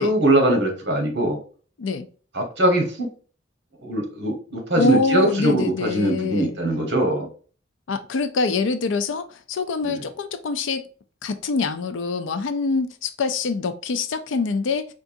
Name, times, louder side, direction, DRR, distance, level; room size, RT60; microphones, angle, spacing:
voice 1, 0.0-1.4 2.3-3.1 3.8-7.3 9.8-9.9, right 1 dB, 60° right, 1.2 m, -21 dB
voice 2, 4.8-6.6 7.9-10.8 11.2-14.9, left 4 dB, 80° left, 0.4 m, -25 dB
4.6 x 2.5 x 2.5 m
head